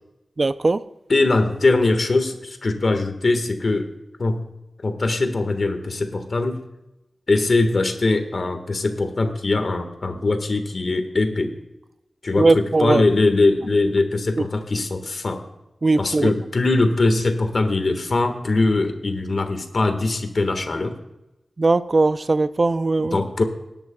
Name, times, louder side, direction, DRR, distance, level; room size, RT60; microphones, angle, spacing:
voice 1, 0.4-0.8 12.4-13.0 15.8-16.3 21.6-23.2, right 3 dB, 40° right, 13 dB, 0.5 m, -19 dB
voice 2, 1.1-3.9 4.2-4.4 4.8-6.6 7.3-11.5 12.2-15.4 16.0-21.0 23.0-23.4, left 2 dB, 55° left, 7 dB, 1.5 m, -21 dB
20.0 x 11.0 x 2.3 m, 0.94 s
wide cardioid pair, 105°, 0 cm